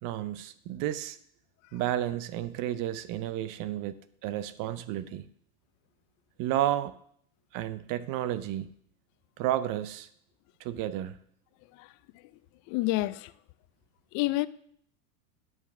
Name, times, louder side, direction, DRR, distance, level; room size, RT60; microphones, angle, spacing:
voice 1, 0.0-1.2 1.7-5.3 6.4-6.9 7.5-8.7 9.4-10.1 10.6-11.2, right 12 dB, 50° right, 0.7 m, -32 dB
voice 2, 12.7-13.3 14.1-14.5, left 19 dB, 45° left, 0.5 m, -28 dB
11.0 x 6.1 x 6.0 m
supercardioid pair, 115°, 43 cm